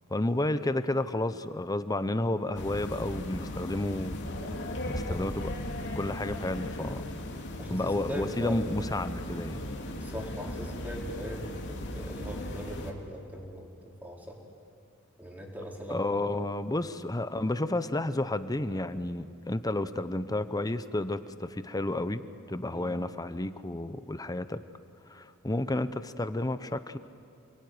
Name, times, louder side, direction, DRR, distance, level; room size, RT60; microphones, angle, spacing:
voice 1, 0.1-4.2 4.9-5.5 6.0-7.0 7.7-9.6 15.9-22.2 22.5-24.6 25.1-27.0, left 1 dB, 15° left, 12 dB, 0.8 m, -31 dB
sound 1, 2.5-12.9, left 1 dB, 55° left, 2.9 m, -37 dB
voice 2, 7.6-8.6 10.0-14.4 15.2-16.2 22.7-22.9, equal, 10° right, -1 dB, 4.3 m, -40 dB
28.5 x 21.5 x 9.6 m, 2.3 s
head